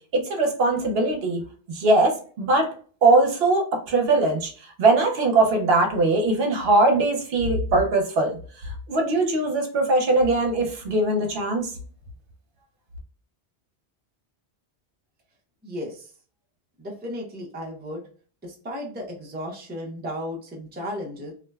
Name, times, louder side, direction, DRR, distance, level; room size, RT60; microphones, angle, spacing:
voice 1, 0.1-1.4 1.7-2.7 3.0-4.5 4.8-8.4 8.9-11.7, right 2 dB, 70° right, 2 dB, 0.9 m, -21 dB
voice 2, 15.6-16.1 16.8-18.0 18.4-21.3, equal, 15° right, -1 dB, 0.4 m, -34 dB
2.6 x 2.1 x 2.2 m, 0.42 s
omnidirectional pair, 1.1 m